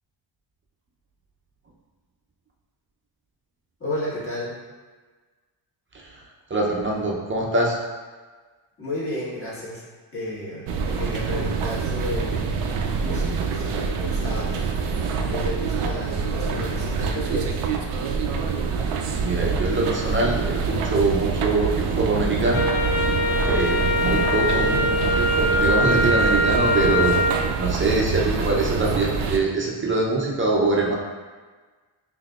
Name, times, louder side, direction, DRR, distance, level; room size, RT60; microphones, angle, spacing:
voice 1, 3.8-4.5 8.8-9.8 10.1-12.5 13.0-14.5 15.3-17.6 23.2-23.7, left 1 dB, 25° left, -8 dB, 1.4 m, -32 dB
voice 2, 6.5-7.8 19.2-22.6 23.4-27.2 27.6-31.0, right 2 dB, 25° right, -2 dB, 0.6 m, -24 dB
sound 1, 10.7-29.4, right 5 dB, 90° right, 0.6 m, -26 dB
Wind instrument woodwind instrument, 22.5-27.4, left 1 dB, 65° left, 0.7 m, -22 dB
5.7 x 2.7 x 2.3 m, 1.4 s
wide cardioid pair, 130°, 49 cm